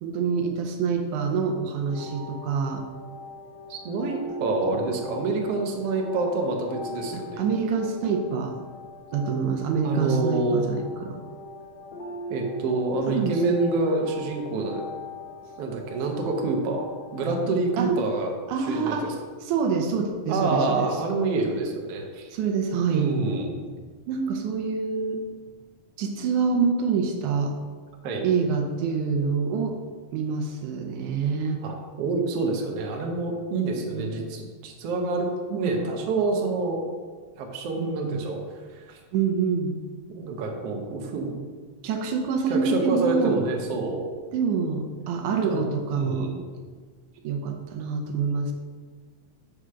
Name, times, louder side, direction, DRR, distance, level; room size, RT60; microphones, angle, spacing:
voice 1, 0.0-2.8 7.1-8.6 9.1-11.2 13.1-13.7 17.8-17.9 18.5-19.1 19.4-20.9 22.3-23.1 24.1-25.2 26.0-27.5 28.2-29.8 30.1-31.6 33.9-34.1 35.5-35.9 37.8-38.2 39.1-39.8 41.8-43.4 44.3-46.3 47.2-48.5, right 5 dB, 85° right, 3 dB, 2.1 m, -26 dB
sound 1, 1.9-17.9, equal, 50° left, 1.8 m, -40 dB
voice 2, 3.7-7.4 9.8-10.7 12.3-14.9 15.6-16.9 17.1-18.3 18.7-19.1 20.3-22.3 22.9-23.5 28.0-28.3 31.6-36.9 37.4-39.0 40.1-41.4 42.5-44.1 45.5-45.6 45.9-46.4, right 3 dB, 65° right, 1 dB, 1.6 m, -27 dB
5.0 x 4.9 x 5.6 m, 1.5 s
omnidirectional pair, 3.5 m